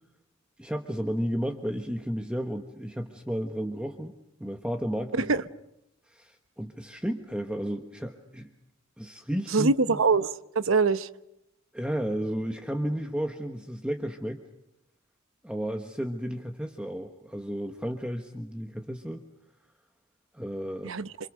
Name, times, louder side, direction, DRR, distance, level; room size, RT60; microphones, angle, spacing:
voice 1, 0.6-4.1 4.4-5.3 6.1-8.5 9.0-10.0 11.7-14.4 15.4-19.2 20.3-20.9, equal, 5° right, 1.3 m, -33 dB
voice 2, 9.5-11.1 20.8-21.1, right 4 dB, 75° right, 0.9 m, -24 dB
29.0 x 25.5 x 6.6 m
head